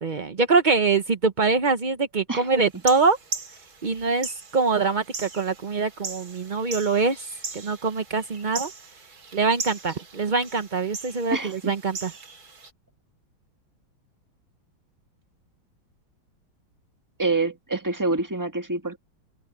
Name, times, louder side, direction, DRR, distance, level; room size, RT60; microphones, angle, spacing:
voice 1, 0.0-3.2 3.8-7.3 7.5-8.7 9.3-12.1, right 4 dB, 75° right, 0.4 m, -24 dB
sound 1, 2.7-12.7, right 4 dB, 45° right, 2.8 m, -39 dB
voice 2, 11.3-11.7 17.2-19.0, right 3 dB, 10° right, 1.2 m, -26 dB
open air
omnidirectional pair, 2.3 m